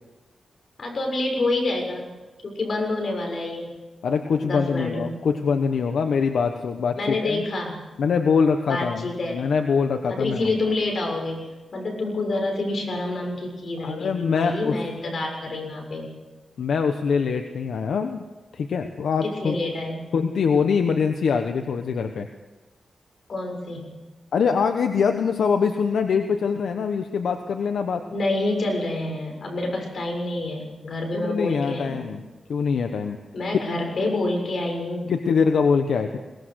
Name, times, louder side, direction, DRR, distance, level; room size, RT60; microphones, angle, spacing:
voice 1, 0.8-2.1 2.4-3.7 4.4-5.2 6.9-7.8 8.7-9.5 10.1-11.4 11.7-16.1 19.2-20.0 23.3-23.9 28.1-32.1 33.3-35.1, left 2 dB, 60° left, 2 dB, 7.0 m, -27 dB
voice 2, 4.0-7.4 8.0-10.5 13.8-14.8 16.6-18.3 18.5-19.6 20.1-22.3 24.3-28.0 31.1-32.2 32.5-33.2 35.1-36.2, left 5 dB, 85° left, 6 dB, 1.2 m, -23 dB
22.5 x 19.5 x 6.5 m, 1.2 s
cardioid pair, 90°, 0 cm